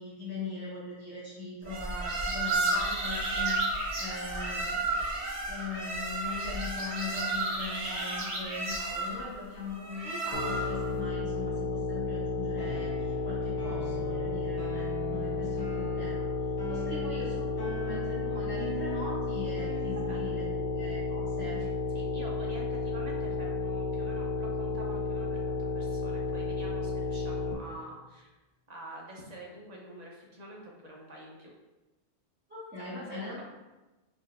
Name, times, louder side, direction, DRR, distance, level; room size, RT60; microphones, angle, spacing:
voice 1, 0.0-5.0 5.5-16.3 16.7-21.6 32.5-33.4, left 3 dB, 10° right, -10 dB, 0.7 m, -40 dB
sound 1, 1.7-10.9, right 2 dB, 90° right, 1.1 m, -32 dB
sound 2, 10.3-27.5, left 3 dB, 60° left, 0.7 m, -32 dB
sound 3, 12.6-20.4, right 2 dB, 25° left, 0.7 m, -43 dB
voice 2, 21.6-28.3 28.7-31.5 33.0-33.4, right 1 dB, 45° right, -2 dB, 0.6 m, -47 dB
4.1 x 2.3 x 3.2 m, 1.1 s
omnidirectional pair, 1.2 m